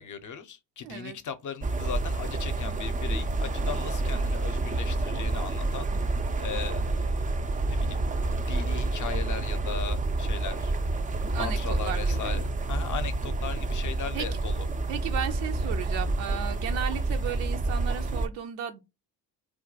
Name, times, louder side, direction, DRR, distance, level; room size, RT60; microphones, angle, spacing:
voice 1, 0.0-5.9 6.4-8.0 8.4-10.7 11.3-14.7, left 7 dB, 40° left, 0.6 m, -38 dB
voice 2, 0.8-1.2 11.3-12.3 14.1-14.3 14.9-18.8, right 9 dB, 65° right, 0.6 m, -34 dB
sound 1, 1.6-18.3, right 2 dB, 20° right, 0.3 m, -28 dB
2.3 x 2.1 x 3.9 m
hypercardioid pair, 50°, 49 cm